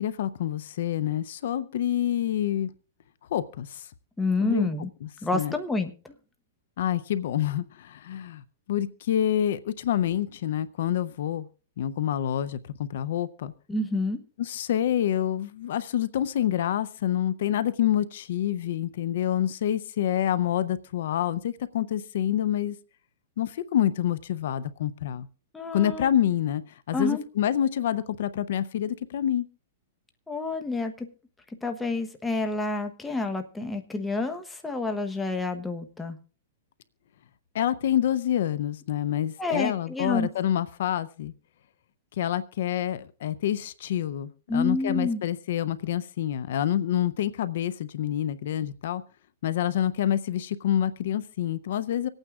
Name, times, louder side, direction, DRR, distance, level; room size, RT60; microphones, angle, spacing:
voice 1, 0.0-2.7 3.3-3.9 4.4-4.7 5.3-5.5 6.8-8.4 8.7-11.5 11.8-13.5 14.4-22.8 23.4-25.3 25.7-26.6 26.9-29.5 37.5-41.3 42.2-49.0 49.4-52.1, left 11 dB, 65° left, 15 dB, 0.5 m, -27 dB
voice 2, 4.2-4.9 5.2-6.1 13.7-14.2 25.5-26.1 26.9-27.2 30.3-31.1 31.6-36.2 39.4-40.3 44.5-45.2, left 3 dB, 10° left, 6 dB, 1.0 m, -28 dB
25.5 x 8.9 x 2.4 m, 0.37 s
hypercardioid pair, 145°, 0 cm